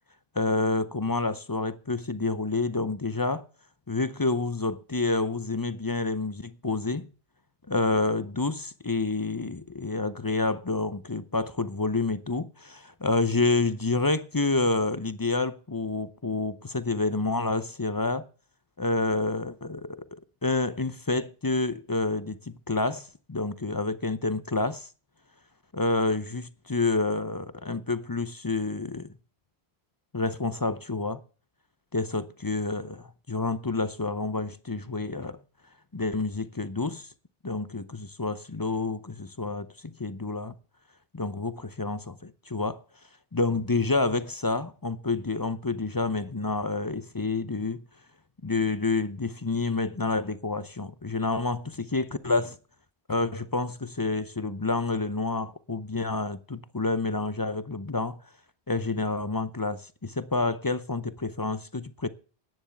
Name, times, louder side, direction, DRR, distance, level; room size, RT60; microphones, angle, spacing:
voice 1, 0.4-3.5 3.9-7.1 7.7-18.3 18.8-24.9 25.7-29.1 30.1-31.2 31.9-35.4 35.9-37.1 37.4-40.5 41.1-42.8 43.3-47.8 48.4-52.6 53.1-58.2 58.7-62.1, left 3 dB, 25° left, 0.6 m, -28 dB
10.5 x 9.8 x 7.1 m
omnidirectional pair, 1.1 m